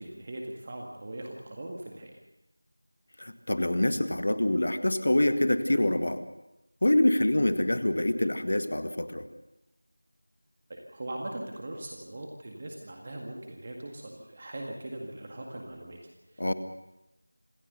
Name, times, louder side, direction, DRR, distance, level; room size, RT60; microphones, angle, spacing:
voice 1, 0.0-2.2 10.7-16.5, right 1 dB, 25° right, 0 dB, 1.9 m, -40 dB
voice 2, 3.2-6.2 6.8-9.3 16.4-16.5, left 1 dB, 50° left, 10 dB, 1.7 m, -25 dB
26.5 x 15.0 x 6.8 m, 0.94 s
figure-of-eight pair, 175°, 0 cm